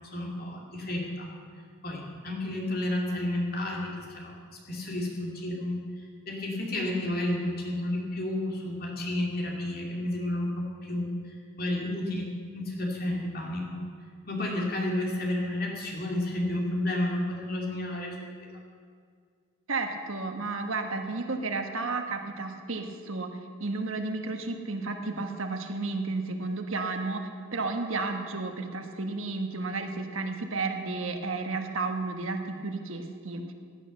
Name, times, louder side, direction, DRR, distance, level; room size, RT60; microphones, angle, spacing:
voice 1, 0.1-1.3 1.8-4.4 4.7-5.8 6.3-11.1 11.6-13.8 14.3-18.3, left 1 dB, 45° left, -1 dB, 2.7 m, -31 dB
voice 2, 19.7-33.5, right 3 dB, 80° right, 5 dB, 1.4 m, -32 dB
16.5 x 9.9 x 6.6 m, 2.1 s
head